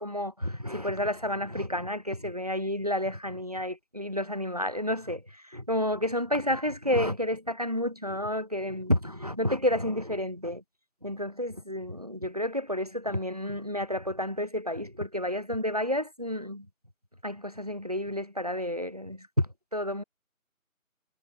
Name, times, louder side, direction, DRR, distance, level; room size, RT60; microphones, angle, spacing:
voice 1, 0.0-5.2 5.5-10.6 11.0-16.7 17.2-20.0, left 1 dB, 30° right, 0.9 m, -30 dB
figure-of-eight pair, 175°, 42 cm